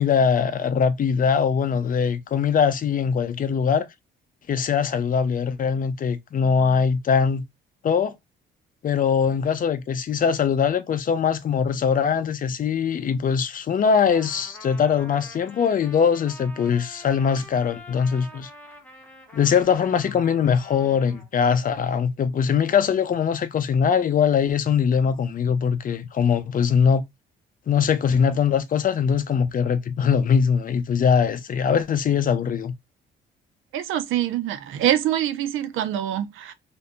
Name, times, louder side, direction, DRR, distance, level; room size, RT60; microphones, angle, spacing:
voice 1, 0.0-3.9 4.5-7.4 7.8-8.1 8.8-18.5 19.3-27.0 27.7-32.7, left 7 dB, 45° left, 0.5 m, -22 dB
Trumpet, 14.1-21.3, equal, 5° left, 1.0 m, -46 dB
voice 2, 33.7-36.5, right 11 dB, 85° right, 0.5 m, -25 dB
2.6 x 2.6 x 2.3 m
cardioid pair, 90°, 20 cm